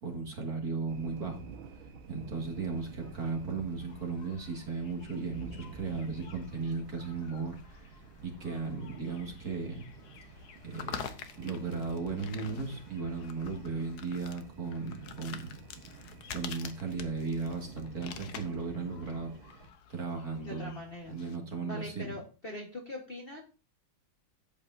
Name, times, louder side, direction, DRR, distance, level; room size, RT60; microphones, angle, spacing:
voice 1, 0.0-1.4 2.1-7.9 8.2-9.8 10.6-11.0 11.4-15.5 16.3-19.5 19.9-20.7 21.1-22.2, right 4 dB, 45° right, 1 dB, 2.5 m, -36 dB
sound 1, 0.9-19.7, right 4 dB, 75° right, 1.9 m, -50 dB
sound 2, 2.4-21.4, left 7 dB, 60° left, 1.2 m, -49 dB
voice 2, 20.4-21.2 21.6-23.4, left 1 dB, 30° left, -1 dB, 1.3 m, -42 dB
11.5 x 8.2 x 2.6 m, 0.34 s
omnidirectional pair, 2.3 m